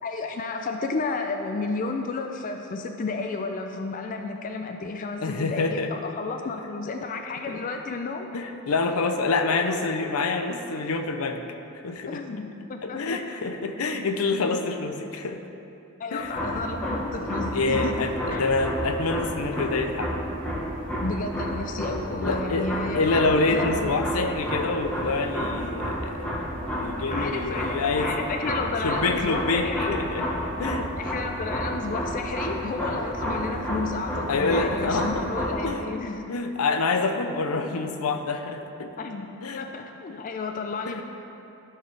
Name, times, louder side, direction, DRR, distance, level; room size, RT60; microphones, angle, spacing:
voice 1, 0.0-8.3 12.1-13.2 16.0-17.9 18.3-18.5 21.0-24.1 27.1-30.0 31.0-36.4 39.0-41.0, left 3 dB, 40° left, 4 dB, 0.4 m, -32 dB
voice 2, 5.2-5.9 7.5-7.6 8.3-11.4 11.8-12.2 12.8-15.4 16.1-16.4 17.2-20.2 22.2-26.3 26.8-28.1 28.8-30.3 30.6-30.9 34.3-35.3 35.6-35.9 36.3-38.9 39.4-39.7 40.9-41.0, left 3 dB, 80° left, 6 dB, 0.6 m, -27 dB
sound 1, 16.2-35.7, equal, 5° left, 1.2 m, -31 dB
14.0 x 4.7 x 3.3 m, 2.8 s
head